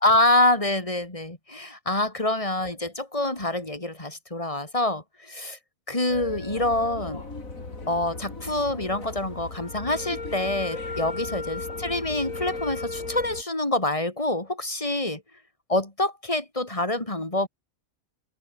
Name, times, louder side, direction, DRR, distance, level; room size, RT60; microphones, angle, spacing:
voice 1, 0.0-5.6 5.9-7.2 7.9-15.2 15.7-17.5, left 2 dB, 25° left, 3.5 m, -26 dB
sound 1, 6.1-13.4, left 3 dB, 70° left, 4.3 m, -36 dB
omnidirectional pair, 1.5 m